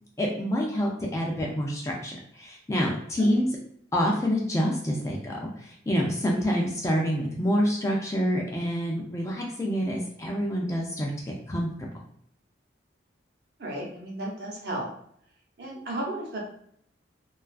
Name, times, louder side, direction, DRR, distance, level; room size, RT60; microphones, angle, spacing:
voice 1, 0.2-3.5 3.9-11.7, equal, 15° left, -1 dB, 0.3 m, -27 dB
voice 2, 13.6-14.9 15.6-16.4, right 1 dB, 55° right, -2 dB, 0.7 m, -34 dB
2.3 x 2.3 x 2.3 m, 0.67 s
head